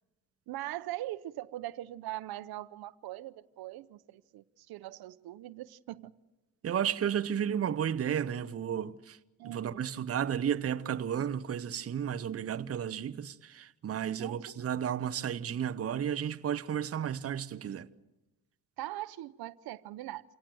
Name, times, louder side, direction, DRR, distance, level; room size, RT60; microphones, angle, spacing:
voice 1, 0.5-6.1 9.4-9.9 14.2-14.4 18.8-20.2, right 15 dB, 85° right, 0.8 m, -41 dB
voice 2, 6.6-9.2 9.4-17.9, right 9 dB, 40° right, 0.8 m, -33 dB
27.5 x 18.0 x 7.8 m
cardioid pair, 110°, 36 cm